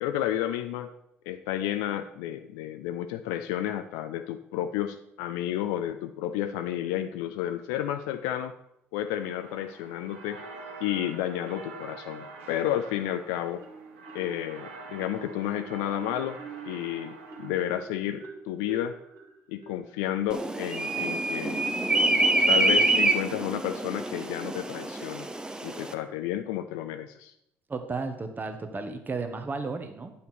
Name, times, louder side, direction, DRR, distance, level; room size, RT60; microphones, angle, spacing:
voice 1, 0.0-0.9 1.3-8.6 8.9-10.4 10.8-13.6 14.1-16.4 16.6-19.0 19.5-21.7 22.5-25.3 25.6-27.3, left 12 dB, 70° left, 9 dB, 0.4 m, -31 dB
sound 1, 9.2-17.5, right 3 dB, 80° right, 0.9 m, -45 dB
Marimba xylophone, 13.6-14.5 15.0-20.5, right 5 dB, 50° right, 1.7 m, -46 dB
sound 2, 20.3-25.9, right 2 dB, 10° right, 0.7 m, -26 dB
voice 2, 27.7-30.3, right 4 dB, 30° right, 6 dB, 1.2 m, -34 dB
9.1 x 5.7 x 4.3 m, 0.78 s
figure-of-eight pair, 50°, 7 cm